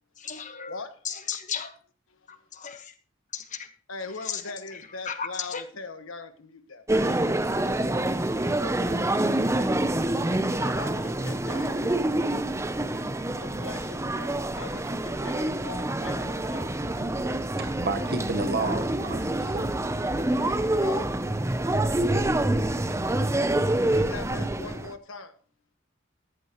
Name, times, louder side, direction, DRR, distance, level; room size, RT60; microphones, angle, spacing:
voice 1, 0.2-0.8 1.0-1.8 2.3-2.9 3.3-3.7 4.2-5.6, left 7 dB, 35° left, 8 dB, 1.2 m, -35 dB
voice 2, 3.9-6.9 9.5-9.7 10.6-11.8 13.4-16.8 20.4-21.2 23.9-25.3, left 3 dB, 80° left, 9 dB, 1.3 m, -41 dB
sound 1, 6.9-24.9, right 1 dB, 15° right, 0.6 m, -26 dB
voice 3, 17.6-19.7, right 3 dB, 50° right, 8 dB, 1.2 m, -31 dB
14.0 x 13.5 x 3.0 m, 0.40 s
head